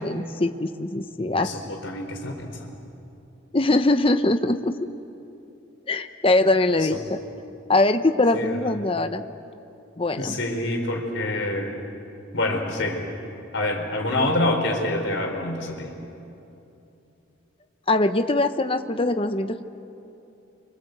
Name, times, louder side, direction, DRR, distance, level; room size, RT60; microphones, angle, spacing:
voice 1, 0.0-1.5 3.5-4.7 5.9-7.2 7.7-9.3 10.0-10.4 17.9-19.6, left 2 dB, 30° left, 8 dB, 0.9 m, -22 dB
voice 2, 1.3-2.7 6.8-6.9 8.3-8.6 10.2-11.8 12.3-13.0 13.5-15.9, left 1 dB, 65° left, 2 dB, 4.5 m, -26 dB
29.0 x 25.0 x 8.0 m, 2.8 s
head